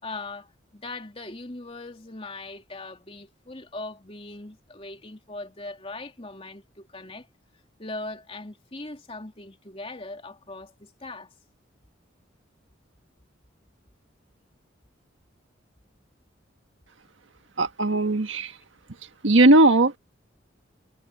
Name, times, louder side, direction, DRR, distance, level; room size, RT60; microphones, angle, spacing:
voice 1, 0.0-7.3 7.8-11.3 17.9-18.0, left 2 dB, 30° left, 3.0 m, -40 dB
voice 2, 17.6-18.5 19.2-20.0, right 2 dB, 80° right, 1.6 m, -18 dB
head